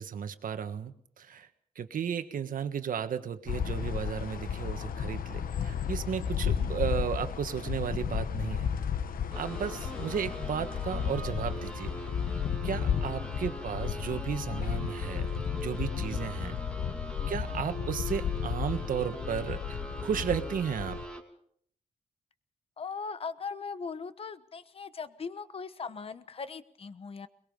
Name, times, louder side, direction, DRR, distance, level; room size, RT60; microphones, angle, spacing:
voice 1, 0.0-1.5 1.7-8.7 9.4-11.9 12.6-16.6 17.3-21.0, right 8 dB, 75° right, 9 dB, 1.5 m, -34 dB
sound 1, 3.5-21.0, left 8 dB, 85° left, 1.1 m, -33 dB
sound 2, 9.3-21.2, right 1 dB, 5° left, 2.7 m, -42 dB
voice 2, 17.2-17.6 22.8-27.3, left 5 dB, 40° left, 13 dB, 1.1 m, -39 dB
22.5 x 21.5 x 5.4 m, 0.65 s
wide cardioid pair, 150°, 14 cm